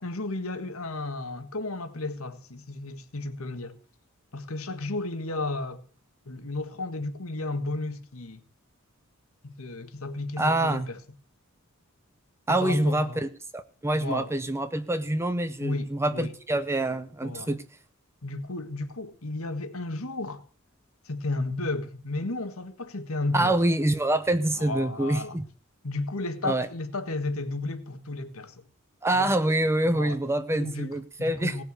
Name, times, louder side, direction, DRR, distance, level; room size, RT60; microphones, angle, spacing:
voice 1, 0.0-3.8 4.3-5.8 6.2-8.4 9.4-11.0 12.5-13.2 14.0-14.3 15.6-16.4 17.2-17.6 18.2-20.4 21.0-23.6 24.5-25.4 25.8-28.5 29.1-29.3 29.9-30.2 30.5-31.6, left 2 dB, 85° left, 1.7 m, -33 dB
voice 2, 10.4-10.9 12.5-17.6 23.3-25.4 26.4-26.7 29.0-31.5, right 1 dB, 10° right, 0.7 m, -26 dB
18.0 x 6.7 x 7.9 m
head